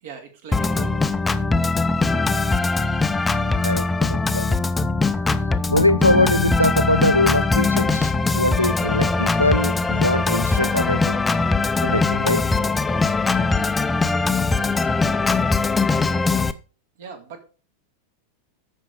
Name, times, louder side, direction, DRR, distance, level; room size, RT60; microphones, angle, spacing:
voice 1, 0.0-1.1 17.0-17.4, right 6 dB, 55° right, 2.3 m, -39 dB
Organ, 0.5-16.5, left 3 dB, 10° left, 0.6 m, -21 dB
voice 2, 3.6-4.6 5.7-11.2 11.8-12.5, left 1 dB, 85° left, 0.5 m, -22 dB
13.5 x 5.3 x 5.0 m
figure-of-eight pair, 90°, 0 cm